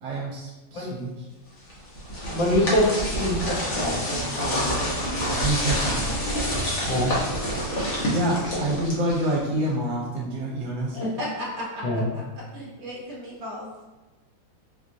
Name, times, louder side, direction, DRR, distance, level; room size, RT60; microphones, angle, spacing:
voice 1, 0.0-1.2 5.4-6.1 8.1-11.0, right 1 dB, 75° right, -4 dB, 1.3 m, -27 dB
sound 1, 1.7-9.5, equal, 50° left, 0.9 m, -27 dB
voice 2, 2.3-2.9 3.2-4.9 5.3-5.4 6.9-7.1 10.9-11.1 11.8-12.1, left 1 dB, 70° left, -4 dB, 1.6 m, -25 dB
voice 3, 11.0-12.2 12.5-13.7, equal, 50° right, -5 dB, 0.9 m, -34 dB
4.4 x 2.4 x 2.6 m, 1.2 s
omnidirectional pair, 2.2 m